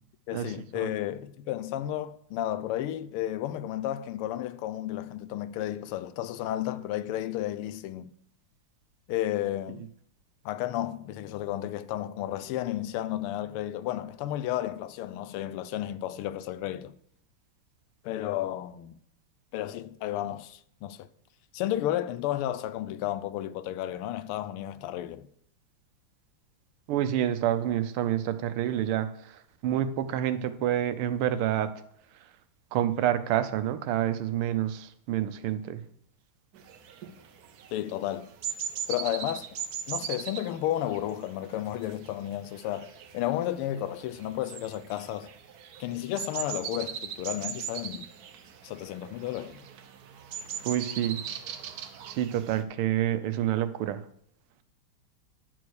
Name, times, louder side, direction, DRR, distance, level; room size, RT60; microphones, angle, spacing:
voice 1, 0.3-8.1 9.1-9.9 10.4-16.9 18.0-18.9 19.5-21.1 21.5-25.3 37.7-38.3 38.9-39.5 39.9-45.3 45.8-48.1 48.6-49.6, left 13 dB, 85° left, 1.5 m, -32 dB
voice 2, 26.9-29.1 29.6-31.7 32.7-35.8 50.6-51.2 52.1-54.0, right 11 dB, 85° right, 1.6 m, -28 dB
sound 1, 36.5-52.6, right 8 dB, 65° right, 1.0 m, -40 dB
10.5 x 4.6 x 6.3 m
omnidirectional pair, 2.4 m